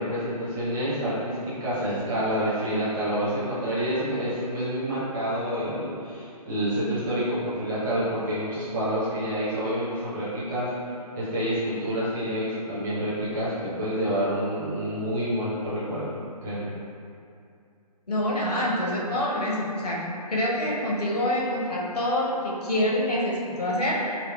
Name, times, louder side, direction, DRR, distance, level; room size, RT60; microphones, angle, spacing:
voice 1, 0.0-10.7 11.1-16.1 16.4-16.7, equal, 30° right, -12 dB, 0.8 m, -28 dB
voice 2, 18.1-24.2, left 1 dB, 70° left, -4 dB, 0.8 m, -26 dB
4.1 x 3.1 x 2.2 m, 2.5 s
figure-of-eight pair, 140°, 21 cm